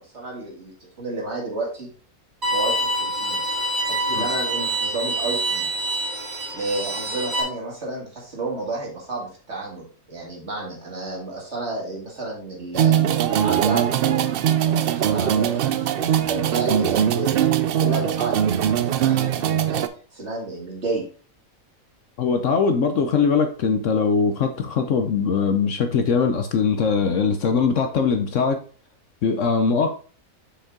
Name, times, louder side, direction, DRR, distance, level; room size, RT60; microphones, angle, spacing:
voice 1, 0.0-1.9 2.5-3.4 3.9-5.7 6.5-13.0 13.4-14.3 14.6-17.3 17.6-18.5 18.7-19.8 20.1-21.0, right 2 dB, 45° right, -3 dB, 2.6 m, -31 dB
Bowed string instrument, 2.4-7.4, right 1 dB, 30° right, 2.3 m, -26 dB
sound 1, 12.7-19.9, right 9 dB, 80° right, 0.5 m, -21 dB
voice 2, 22.2-28.6 29.2-29.9, left 5 dB, 60° left, 7 dB, 1.0 m, -21 dB
6.6 x 5.3 x 3.6 m, 0.41 s
omnidirectional pair, 1.6 m